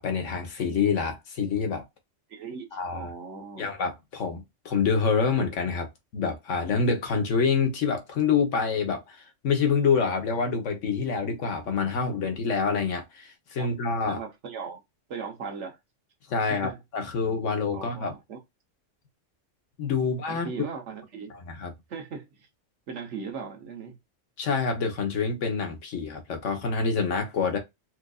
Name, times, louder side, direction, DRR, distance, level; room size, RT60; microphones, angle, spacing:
voice 1, 0.0-1.8 2.7-3.1 3.6-14.2 16.3-18.1 19.8-20.5 21.5-21.7 24.4-27.6, left 5 dB, 75° left, 1.3 m, -27 dB
voice 2, 2.3-3.7 13.6-13.7 14.0-14.8 15.1-15.8 16.4-16.8 17.7-18.4 20.0-21.3 21.9-22.5 22.9-24.0, right 5 dB, 70° right, 1.3 m, -38 dB
4.4 x 2.5 x 2.3 m
omnidirectional pair, 1.3 m